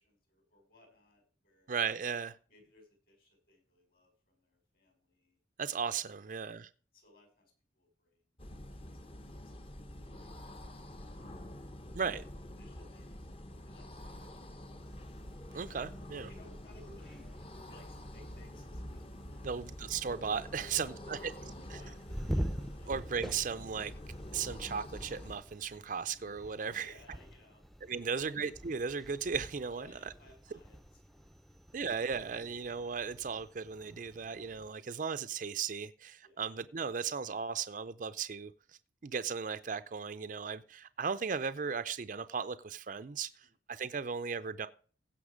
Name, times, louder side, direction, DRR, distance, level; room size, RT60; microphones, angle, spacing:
voice 1, 0.0-1.7 2.5-5.4 6.2-6.5 6.9-8.2 9.4-9.5 12.6-13.2 13.7-14.9 16.1-17.3 17.7-19.6 20.6-22.9 26.6-27.6 27.9-28.3 29.7-31.9 36.2-36.4 43.4-43.5, left 2 dB, 50° left, 5.6 m, -61 dB
voice 2, 1.7-2.4 5.6-6.7 11.9-12.2 15.5-16.3 19.4-21.3 22.9-23.9 24.3-26.9 27.9-30.1 31.7-38.5 39.0-44.7, right 6 dB, 45° right, 0.4 m, -36 dB
sound 1, 8.4-25.4, left 1 dB, 30° left, 0.9 m, -47 dB
sound 2, 14.8-34.7, equal, ahead, 0.5 m, -46 dB
16.0 x 5.7 x 5.0 m
head